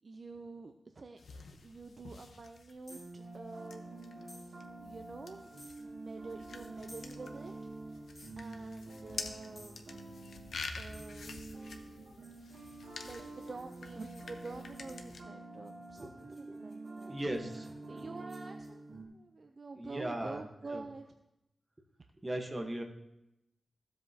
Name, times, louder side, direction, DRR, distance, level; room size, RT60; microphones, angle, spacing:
voice 1, 0.0-5.5 5.8-8.0 8.4-9.9 10.7-11.4 13.0-17.2 17.5-17.6 17.9-21.0, right 3 dB, 40° right, 6 dB, 0.5 m, -48 dB
sound 1, 1.2-15.2, left 4 dB, 80° left, 0.8 m, -48 dB
sound 2, 2.9-3.2 4.3-4.5 5.6-5.8 6.9-7.1 8.2-8.4 9.6-9.8 10.9-11.2 12.2-15.1 15.6-18.7, left 1 dB, 15° left, 2.2 m, -58 dB
sound 3, 2.9-19.0, right 2 dB, 90° right, 1.9 m, -48 dB
voice 2, 16.0-16.6 17.1-18.1 19.8-20.4 20.7-20.9 22.2-22.8, right 1 dB, 20° right, 3 dB, 1.1 m, -39 dB
15.0 x 7.6 x 2.8 m, 0.87 s
wide cardioid pair, 145°, 0 cm